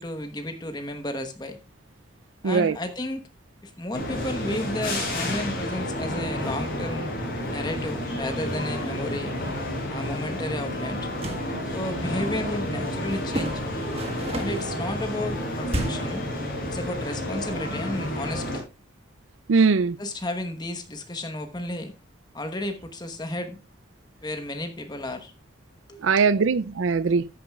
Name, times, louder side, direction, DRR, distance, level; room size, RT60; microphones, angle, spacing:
voice 1, 0.0-1.6 2.4-3.2 3.6-7.1 7.5-9.3 9.9-11.1 11.7-13.6 14.4-16.3 16.7-18.6 20.0-21.9 22.3-23.6 24.2-25.3 25.9-26.3, left 1 dB, 20° left, 1.1 m, -32 dB
voice 2, 2.4-2.8 19.5-20.0 26.0-27.3, right 5 dB, 80° right, 0.5 m, -21 dB
sound 1, 3.9-18.6, left 1 dB, 50° left, 6.1 m, -30 dB
sound 2, 11.2-11.5 13.3-14.7 15.7-16.2, right 1 dB, 30° right, 1.4 m, -31 dB
14.0 x 9.3 x 2.4 m
head